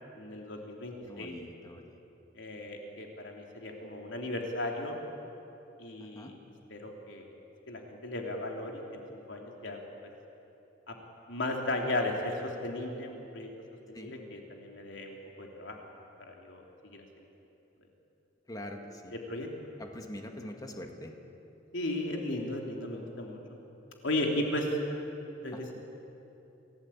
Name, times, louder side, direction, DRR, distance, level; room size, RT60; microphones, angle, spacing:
voice 1, 0.1-1.3 2.3-5.0 5.8-6.4 6.7-7.3 7.7-9.0 9.3-9.8 10.9-11.0 11.3-13.5 13.9-15.8 16.3-17.0 19.3-19.5 21.7-23.4 24.0-24.7 25.4-25.7, left 1 dB, 90° left, 1 dB, 3.2 m, -35 dB
voice 2, 1.1-2.0 6.0-6.3 13.9-14.1 18.5-19.1 19.8-21.1 25.5-25.7, left 1 dB, 20° left, 3 dB, 2.0 m, -44 dB
27.5 x 17.0 x 8.7 m, 2.9 s
head